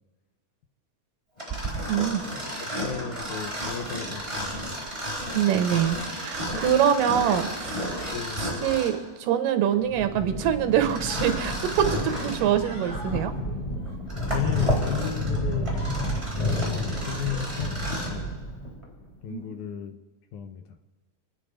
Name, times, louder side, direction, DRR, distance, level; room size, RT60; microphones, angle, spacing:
Mechanisms, 1.4-9.1 10.9-12.5 13.1-13.2 13.9-18.2, equal, 10° right, 4.2 m, -33 dB
voice 1, 1.9-2.2 2.6-2.8 5.3-7.9 8.4-13.3 19.3-19.5, right 9 dB, 85° right, 9 dB, 2.6 m, -25 dB
voice 2, 2.6-4.7 8.1-8.5 14.3-15.9 16.6-17.8 18.1-18.3 19.2-20.0 20.3-20.8, left 9 dB, 75° left, 8 dB, 2.0 m, -34 dB
sound 1, 9.8-19.0, left 1 dB, 10° left, 2.7 m, -30 dB
sound 2, 10.0-10.3 10.7-11.5 11.9-13.2 13.7-14.6 15.0-15.2 15.5-16.1, left 1 dB, 60° left, 5.6 m, -45 dB
27.0 x 9.7 x 5.1 m, 1.3 s
omnidirectional pair, 3.9 m